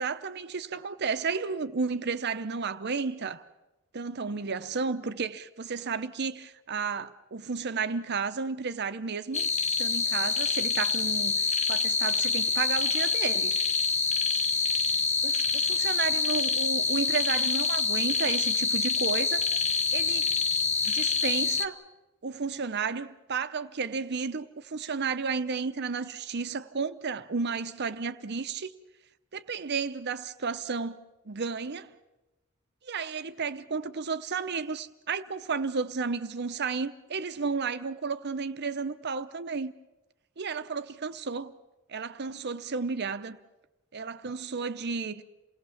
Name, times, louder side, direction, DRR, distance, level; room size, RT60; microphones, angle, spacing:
voice 1, 0.0-3.4 3.9-9.5 9.8-13.5 15.2-19.4 19.9-20.3 20.8-21.8 22.2-28.7 29.3-31.0 31.3-31.9 32.8-39.7 40.4-41.5 41.9-43.4 43.9-45.2, right 5 dB, 55° right, 0.7 m, -32 dB
sound 1, 9.3-21.7, left 5 dB, 35° left, 0.8 m, -26 dB
28.5 x 18.0 x 7.2 m
head